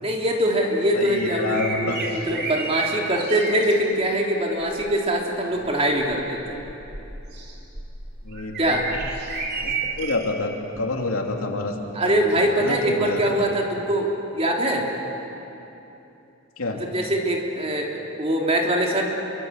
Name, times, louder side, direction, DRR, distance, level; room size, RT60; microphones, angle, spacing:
voice 1, 0.0-6.6 8.6-8.9 11.9-14.9 16.7-17.9 18.2-19.0, right 1 dB, 30° right, 0 dB, 3.3 m, -23 dB
voice 2, 0.9-2.0 8.3-8.5 9.6-10.5 10.8-11.7 12.0-12.1 12.4-13.2 16.6-16.8, left 2 dB, 90° left, 2 dB, 2.8 m, -27 dB
sound 1, 1.0-3.8 4.6-5.0 5.6-10.2 10.7-10.9 12.7-12.8, right 3 dB, 50° right, 4.0 m, -32 dB
28.0 x 23.5 x 8.2 m, 3.0 s
head